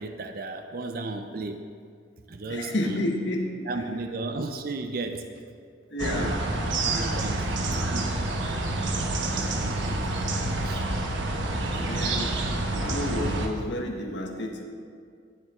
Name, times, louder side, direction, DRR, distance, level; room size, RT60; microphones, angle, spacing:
voice 1, 0.0-1.6 2.3-3.0 3.7-5.2 6.0-6.3 6.8-8.1 9.3-10.3 10.6-10.9, right 3 dB, 50° right, 6 dB, 0.5 m, -35 dB
voice 2, 2.5-3.7 5.9-6.4 9.1-9.2 10.3-10.4 11.7-12.3 12.7-14.6, left 1 dB, 75° left, 1 dB, 1.3 m, -31 dB
sound 1, 6.0-13.5, right 2 dB, 85° right, 1.1 m, -28 dB
13.5 x 7.8 x 3.7 m, 2.2 s
head